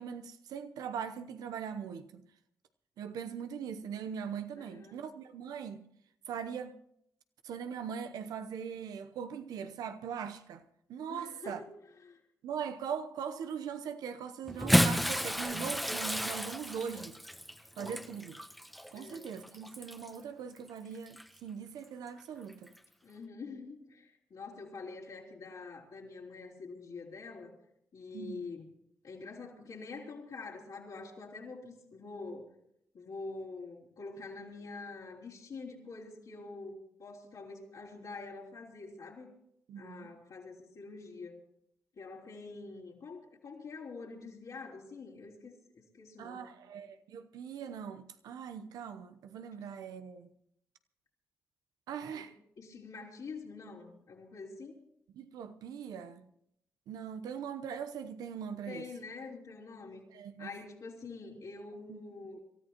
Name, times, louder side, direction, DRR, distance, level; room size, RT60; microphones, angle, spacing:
voice 1, 0.0-2.2 3.0-5.9 6.3-6.8 7.4-11.6 12.4-17.2 17.8-18.4 18.9-22.7 28.1-28.4 39.7-40.1 46.2-50.3 51.9-52.3 55.1-56.3 56.9-58.9 60.1-60.5 61.9-62.0, right 7 dB, 80° right, 0.8 m, -41 dB
voice 2, 4.6-5.0 11.1-11.6 12.0-12.2 18.9-19.4 23.0-27.5 27.9-28.7 29.0-32.5 32.9-39.3 39.8-41.4 41.9-46.5 52.2-52.3 52.6-54.8 58.7-60.1 60.4-62.4, left 4 dB, 70° left, 3.8 m, -46 dB
Bathtub (filling or washing) / Splash splatter, 14.5-20.2 21.1-21.2 22.7-22.8, equal, ahead, 1.1 m, -32 dB
26.5 x 13.5 x 3.0 m
supercardioid pair, 45°, 6 cm